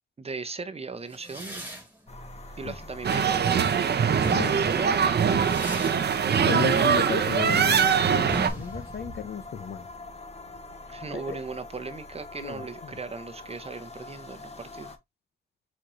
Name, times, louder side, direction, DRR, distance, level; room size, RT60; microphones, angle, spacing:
voice 1, 0.2-1.6 2.6-3.3 4.5-6.0 10.9-14.9, right 4 dB, 35° right, 0.6 m, -38 dB
sound 1, 1.1-3.6 4.0-11.5, equal, 10° right, 1.7 m, -40 dB
sound 2, 2.1-15.0, left 2 dB, 40° left, 0.8 m, -44 dB
sound 3, 3.0-8.5, right 7 dB, 80° right, 0.6 m, -23 dB
voice 2, 6.5-9.9 11.1-11.4 12.4-13.0, left 7 dB, 75° left, 0.6 m, -33 dB
4.7 x 4.2 x 2.5 m
wide cardioid pair, 100°, 17 cm